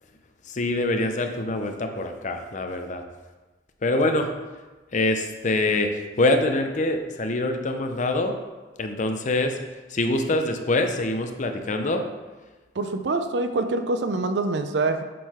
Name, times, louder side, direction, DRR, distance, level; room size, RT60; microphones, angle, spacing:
voice 1, 0.5-3.0 3.8-4.3 4.9-8.4 8.8-9.6 9.9-12.0, left 2 dB, 45° left, 6 dB, 0.6 m, -24 dB
voice 2, 12.8-15.0, right 3 dB, 70° right, 8 dB, 0.5 m, -25 dB
7.5 x 3.9 x 4.2 m, 1.2 s
head